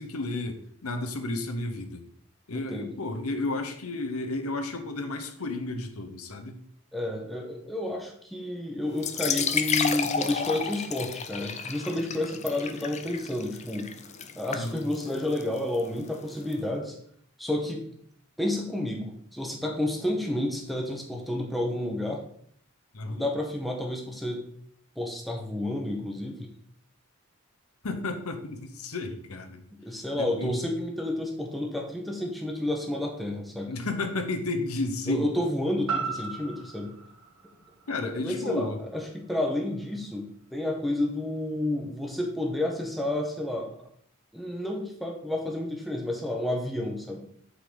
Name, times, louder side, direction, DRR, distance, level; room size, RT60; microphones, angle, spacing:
voice 1, 0.0-2.0 2.5-6.6 14.5-14.9 22.9-23.3 27.8-29.6 30.2-30.6 33.7-35.3 37.9-38.8, left 2 dB, 80° left, 6 dB, 1.0 m, -32 dB
voice 2, 2.5-2.9 6.9-13.9 14.4-17.0 17.4-17.8 18.4-22.2 23.1-24.4 25.0-26.5 29.8-33.7 35.1-36.9 38.0-43.7 44.3-47.2, left 1 dB, ahead, 0 dB, 1.0 m, -30 dB
sound 1, 8.9-16.5, left 6 dB, 30° left, 0.5 m, -32 dB
sound 2, 35.9-40.0 40.4-40.5, right 5 dB, 70° right, 1.8 m, -37 dB
8.2 x 4.0 x 5.1 m, 0.64 s
head